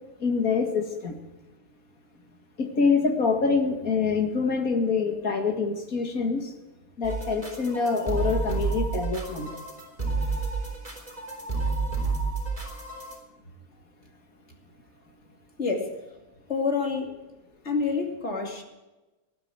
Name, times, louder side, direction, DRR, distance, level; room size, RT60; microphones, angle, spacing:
voice 1, 0.2-1.2 2.6-6.5 7.0-9.5, left 5 dB, 75° left, 3 dB, 2.5 m, -25 dB
sound 1, 7.0-13.2, right 3 dB, 25° right, 4.0 m, -30 dB
voice 2, 15.6-15.9 16.5-17.2 17.6-18.6, left 4 dB, 50° left, 2 dB, 2.7 m, -27 dB
19.0 x 12.0 x 4.7 m, 1.1 s
omnidirectional pair, 1.5 m